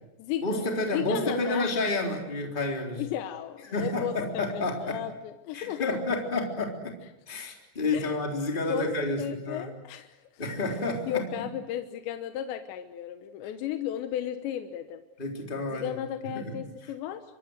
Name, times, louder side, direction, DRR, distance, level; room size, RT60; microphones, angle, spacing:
voice 1, 0.4-3.0 3.7-5.0 5.5-7.0 7.3-9.7 10.4-11.3 15.2-16.0 16.2-16.6, left 2 dB, 10° left, 2 dB, 3.2 m, -30 dB
voice 2, 0.9-1.7 3.0-5.9 7.9-8.2 8.7-10.2 11.1-15.0 15.7-17.2, left 10 dB, 80° left, 7 dB, 3.3 m, -34 dB
26.5 x 23.5 x 8.0 m, 0.94 s
omnidirectional pair, 5.1 m